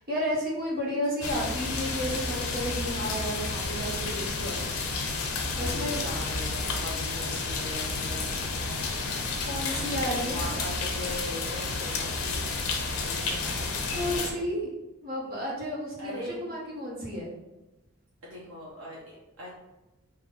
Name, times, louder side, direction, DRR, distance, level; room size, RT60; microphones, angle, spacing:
voice 1, 0.0-4.7 5.5-6.0 9.4-10.5 13.9-14.7 15.0-17.3, equal, 45° right, -5 dB, 1.3 m, -32 dB
sound 1, 1.2-14.3, left 3 dB, 80° left, 0.7 m, -31 dB
voice 2, 5.5-9.6 9.8-12.5 12.9-14.5 16.0-16.4 18.2-19.0 19.4-19.5, equal, 80° right, -7 dB, 1.1 m, -41 dB
sound 2, 5.6-10.7, left 1 dB, 65° right, 1.5 m, -44 dB
4.0 x 2.6 x 4.1 m, 1.0 s
head